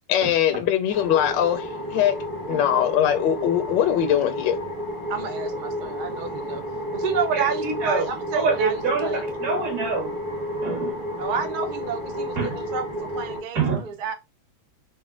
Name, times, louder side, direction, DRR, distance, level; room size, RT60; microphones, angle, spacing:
voice 1, 0.1-2.1 2.5-4.6, left 10 dB, 75° left, 1.2 m, -21 dB
sound 1, 0.9-13.4, equal, 20° right, 0.9 m, -31 dB
voice 2, 5.1-6.6 6.9-9.2 11.2-14.1, right 6 dB, 80° right, 0.4 m, -30 dB
voice 3, 7.3-8.0 8.3-10.1 10.6-11.0 12.4-12.5 13.6-13.8, right 4 dB, 55° right, 1.9 m, -25 dB
4.1 x 2.1 x 3.6 m
omnidirectional pair, 2.1 m